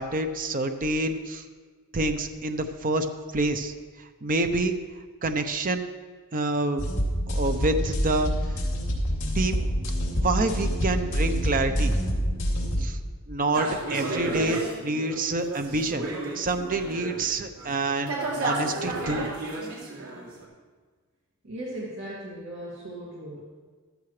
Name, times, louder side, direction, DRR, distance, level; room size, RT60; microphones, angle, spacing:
voice 1, 0.0-1.4 1.9-3.1 3.3-4.8 5.2-5.9 6.3-6.8 7.3-8.3 9.3-9.6 10.2-11.9 12.8-13.0 13.3-16.1 16.3-18.1 18.4-19.3, right 2 dB, 40° right, 7 dB, 0.8 m, -27 dB
sound 1, 6.8-12.8, equal, 60° left, 2.7 m, -26 dB
sound 2, 13.5-17.2 17.6-20.4, right 2 dB, 80° right, 3.2 m, -32 dB
voice 2, 21.4-23.4, right 1 dB, 55° right, -5 dB, 2.3 m, -37 dB
14.5 x 13.5 x 3.3 m, 1.5 s
head